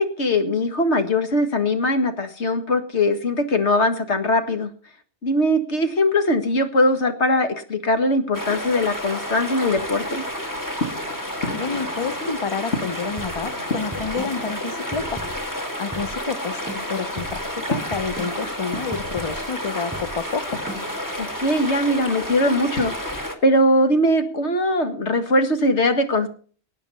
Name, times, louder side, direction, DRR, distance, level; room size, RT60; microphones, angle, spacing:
voice 1, 0.0-4.7 5.2-10.2 21.2-26.3, left 1 dB, 70° left, 7 dB, 2.0 m, -21 dB
sound 1, 8.3-15.1 15.5-23.0, left 2 dB, 90° left, 2.2 m, -36 dB
sound 2, 8.3-23.4, equal, 15° left, 1.9 m, -30 dB
voice 2, 11.5-15.2 15.8-16.6 16.9-20.6, left 5 dB, 30° left, 13 dB, 0.7 m, -29 dB
sound 3, 13.2-21.1, right 1 dB, 5° right, 5.6 m, -37 dB
19.0 x 8.9 x 5.5 m, 0.43 s
omnidirectional pair, 1.2 m